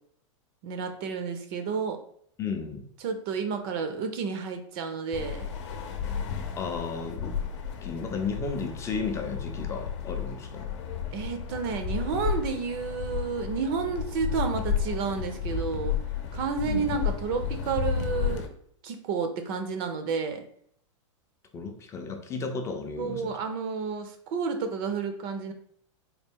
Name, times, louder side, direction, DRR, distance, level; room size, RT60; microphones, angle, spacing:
voice 1, 0.6-2.0 3.0-5.5 11.1-15.9 16.3-18.5 18.8-20.4 23.0-25.5, right 5 dB, 45° right, 7 dB, 0.5 m, -31 dB
voice 2, 2.4-2.8 6.6-7.4 7.8-10.7 16.6-16.9 21.5-23.3, left 5 dB, 15° left, 5 dB, 0.4 m, -33 dB
sound 1, 5.1-18.5, left 7 dB, 65° left, 0.7 m, -32 dB
4.0 x 2.3 x 3.5 m, 0.65 s
supercardioid pair, 145°, 17 cm